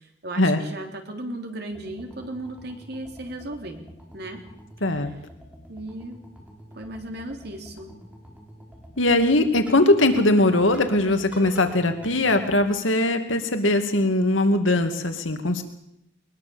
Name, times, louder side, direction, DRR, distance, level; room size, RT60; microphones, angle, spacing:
voice 1, 0.2-3.8 4.1-4.4 5.7-6.2 6.8-8.0, right 1 dB, 55° right, 4 dB, 3.5 m, -36 dB
sound 1, 1.7-12.6, equal, 5° right, 5.7 m, -46 dB
voice 2, 4.8-5.1 9.0-15.6, left 2 dB, 90° left, 6 dB, 2.5 m, -20 dB
22.0 x 21.0 x 7.1 m, 0.78 s
head